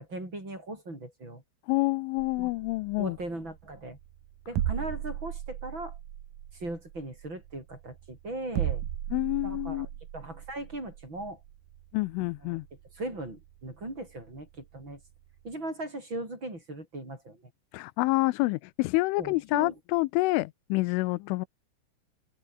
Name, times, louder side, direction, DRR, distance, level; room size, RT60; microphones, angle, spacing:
voice 1, 0.0-1.4 2.4-2.5 3.0-4.0 4.5-6.0 6.5-8.8 9.4-9.9 10.1-11.4 12.4-12.6 12.9-15.0 15.4-17.4 19.2-19.7, right 2 dB, 20° right, 8.4 m, -38 dB
voice 2, 1.7-3.2 9.1-9.9 11.9-12.7 17.7-21.5, left 22 dB, 80° left, 3.0 m, -27 dB
sound 1, 2.2-15.5, right 12 dB, 65° right, 2.1 m, -38 dB
omnidirectional pair, 5.7 m